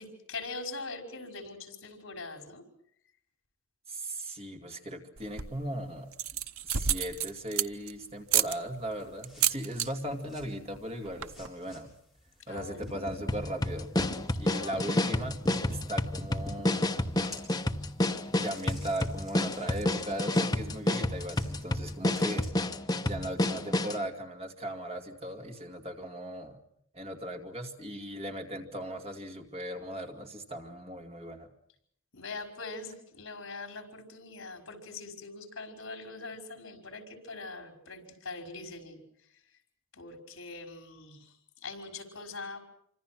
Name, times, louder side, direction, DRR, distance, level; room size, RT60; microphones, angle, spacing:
voice 1, 0.0-2.6 12.5-12.9 14.3-14.8 17.8-17.9 32.1-39.0 39.9-41.3 41.6-42.6, left 3 dB, 65° left, 4 dB, 5.5 m, -42 dB
voice 2, 3.9-11.9 12.5-13.9 14.4-17.2 18.1-22.5 23.0-26.6 26.9-31.5, right 1 dB, 30° right, 3 dB, 2.4 m, -38 dB
sound 1, 5.2-5.7 6.1-7.9 8.3-8.5 9.2-9.9 10.2-10.5 10.7-10.8 11.0-11.5, right 9 dB, 85° right, 0.9 m, -29 dB
sound 2, 8.3-22.5, left 1 dB, ahead, 7.4 m, -48 dB
sound 3, 13.3-24.0, left 1 dB, 20° left, 1.1 m, -29 dB
28.0 x 25.5 x 6.1 m, 0.70 s
head